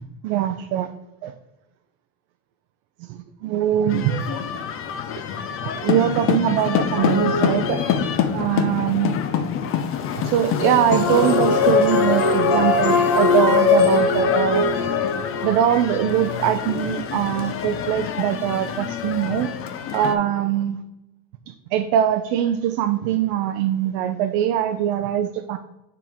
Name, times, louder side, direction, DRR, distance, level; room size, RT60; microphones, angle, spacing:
voice 1, 0.2-0.9 1.2-1.3 3.1-4.2 5.8-7.8 8.3-9.1 10.2-14.6 15.4-19.5 19.9-20.8 21.7-25.6, right 10 dB, 60° right, 7 dB, 0.6 m, -22 dB
sound 1, 3.9-20.1, left 8 dB, 30° left, 0.5 m, -27 dB
sound 2, 7.0-8.3 10.6-15.8, left 4 dB, 60° left, 1.7 m, -20 dB
7.1 x 4.5 x 3.6 m, 0.93 s
supercardioid pair, 130°, 45 cm